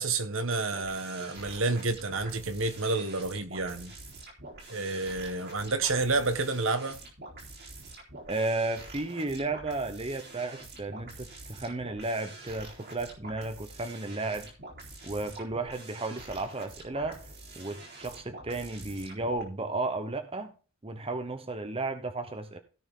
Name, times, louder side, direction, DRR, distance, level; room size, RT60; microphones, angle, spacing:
voice 1, 0.0-3.9 4.7-7.0, right 3 dB, 65° right, 1.5 m, -29 dB
sound 1, 0.7-19.4, right 2 dB, 50° right, 4.0 m, -46 dB
voice 2, 8.3-14.5 15.0-17.2 17.6-20.5 20.8-22.6, right 2 dB, 25° right, 1.0 m, -33 dB
16.5 x 5.9 x 3.9 m
head